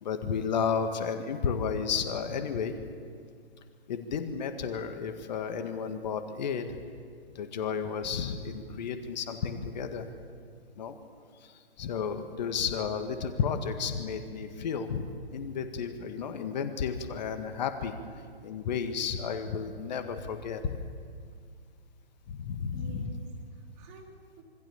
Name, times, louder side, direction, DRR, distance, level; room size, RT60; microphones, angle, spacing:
voice 1, 0.0-2.7 3.9-6.8 7.4-10.1 10.8-11.0 11.4-17.9 18.4-20.7 22.3-23.1, left 6 dB, 40° left, 7 dB, 1.9 m, -32 dB
voice 2, 22.7-24.4, right 4 dB, 25° right, 1 dB, 3.8 m, -50 dB
26.0 x 25.0 x 7.2 m, 2.1 s
figure-of-eight pair, 140°, 32 cm